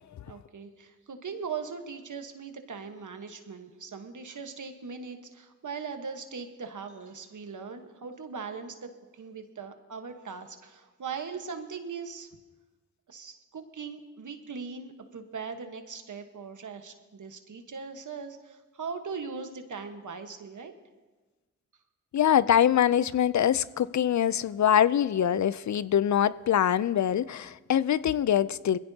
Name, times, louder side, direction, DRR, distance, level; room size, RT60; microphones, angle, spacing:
voice 1, 0.3-8.9 9.2-12.3 13.1-20.7, right 5 dB, 80° right, 1.3 m, -40 dB
voice 2, 22.1-28.8, left 10 dB, 70° left, 0.5 m, -24 dB
21.5 x 16.0 x 2.8 m
cardioid pair, 45°, 30 cm